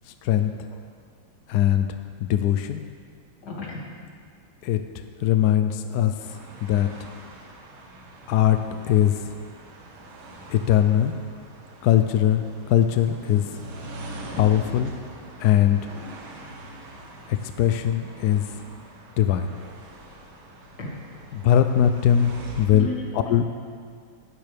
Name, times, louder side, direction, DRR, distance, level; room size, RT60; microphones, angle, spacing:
voice 1, 0.1-0.5 1.5-1.9 2.2-2.8 4.6-7.1 8.3-8.6 8.9-9.3 10.5-11.1 11.8-13.6 14.4-14.9 15.4-15.8 17.3-18.6 19.2-19.5 21.3-22.9 23.3-23.4, left 10 dB, 75° left, 8 dB, 0.9 m, -21 dB
voice 2, 3.4-3.8 20.8-21.0 22.7-23.5, left 1 dB, 55° left, -3 dB, 2.8 m, -34 dB
sound 1, 6.2-22.7, right 1 dB, 75° right, 2.2 m, -43 dB
15.5 x 12.0 x 3.5 m, 2.1 s
omnidirectional pair, 2.2 m